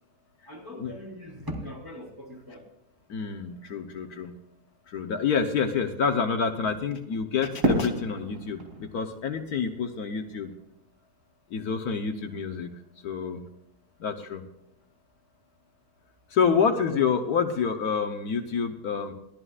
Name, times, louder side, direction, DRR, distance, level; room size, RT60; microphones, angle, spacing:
voice 1, 0.5-2.7 16.5-17.1, equal, 10° right, -2 dB, 3.7 m, -39 dB
voice 2, 3.1-4.3 4.9-10.5 11.5-12.7 13.0-13.4 14.0-14.4 16.3-19.1, left 6 dB, 65° left, 6 dB, 1.4 m, -28 dB
Fireworks, 7.6-10.7, right 1 dB, 70° right, 4.1 m, -30 dB
22.0 x 15.0 x 2.4 m, 0.84 s
omnidirectional pair, 1.7 m